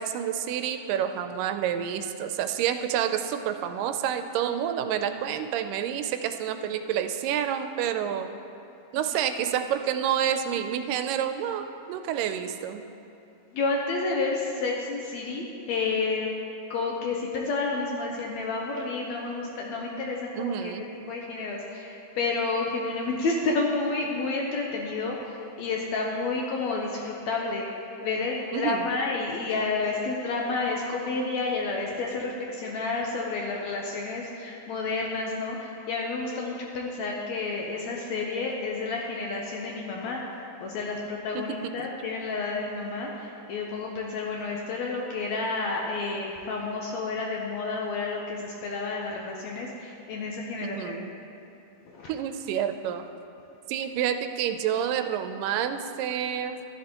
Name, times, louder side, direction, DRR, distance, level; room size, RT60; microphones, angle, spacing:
voice 1, 0.0-8.3 8.9-12.8 20.4-20.9 28.5-28.9 41.3-41.4 41.8-41.9 50.6-51.1 52.1-53.1 53.7-56.7, right 9 dB, 85° right, 8 dB, 2.2 m, -29 dB
voice 2, 13.5-16.3 16.7-20.7 21.1-27.7 28.0-40.2 40.6-51.0 51.9-52.1, left 3 dB, 75° left, -1 dB, 1.7 m, -30 dB
13.0 x 11.0 x 2.9 m, 2.9 s
omnidirectional pair, 3.8 m